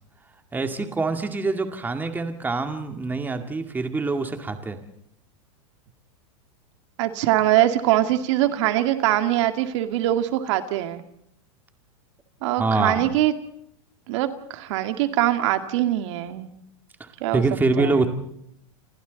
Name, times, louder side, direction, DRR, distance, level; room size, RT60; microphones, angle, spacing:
voice 1, 0.5-4.8 12.6-13.0 17.0-18.1, right 3 dB, 10° right, 6 dB, 2.2 m, -25 dB
voice 2, 7.0-11.0 12.4-13.3 14.1-16.5 17.2-17.4 17.8-18.0, right 14 dB, 60° right, 8 dB, 2.2 m, -22 dB
29.5 x 27.0 x 4.1 m, 0.73 s
supercardioid pair, 135°, 17 cm